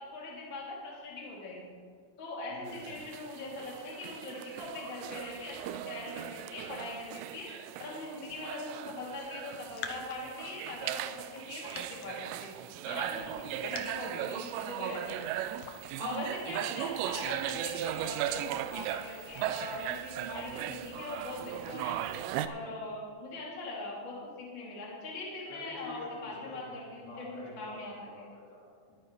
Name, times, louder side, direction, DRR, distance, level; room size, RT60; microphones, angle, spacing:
voice 1, 0.0-1.7 2.2-7.5 7.8-12.5 12.8-15.3 16.0-22.0 22.4-28.1, left 2 dB, 30° left, -5 dB, 3.0 m, -41 dB
voice 2, 2.5-2.9 13.1-13.4 16.4-16.8 17.9-18.2 25.5-28.9, left 2 dB, 60° left, -5 dB, 3.8 m, -48 dB
sound 1, 2.7-22.5, right 12 dB, 85° right, 2.8 m, -38 dB
Raindrop, 9.3-20.0, left 7 dB, 80° left, 2.2 m, -51 dB
23.0 x 9.1 x 3.3 m, 2.1 s
omnidirectional pair, 5.0 m